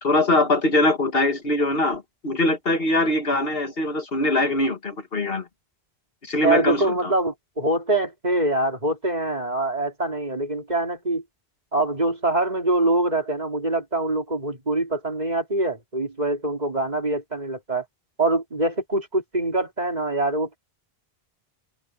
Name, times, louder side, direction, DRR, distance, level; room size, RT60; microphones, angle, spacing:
voice 1, 0.0-5.5 6.2-7.1, left 2 dB, 65° left, 2.1 m, -22 dB
voice 2, 6.4-11.2 11.7-17.9 18.2-20.6, right 2 dB, 40° right, 3.5 m, -24 dB
omnidirectional pair, 1.0 m